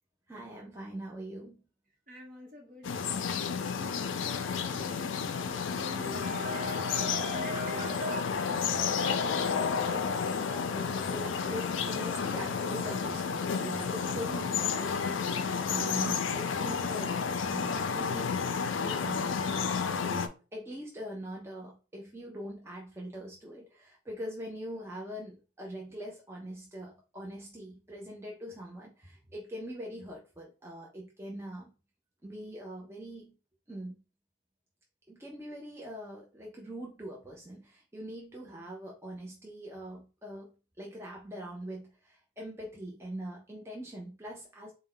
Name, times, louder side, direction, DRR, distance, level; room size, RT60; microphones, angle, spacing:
voice 1, 0.3-1.6 9.4-18.4 18.8-20.2 20.5-31.7 32.2-33.4 33.7-34.0 35.1-40.5 40.8-44.7, equal, 15° right, 0.5 m, -42 dB
voice 2, 2.1-8.3, equal, 45° right, 1.1 m, -41 dB
sound 1, 2.8-20.3, left 6 dB, 75° left, 0.4 m, -31 dB
4.1 x 2.1 x 3.8 m
head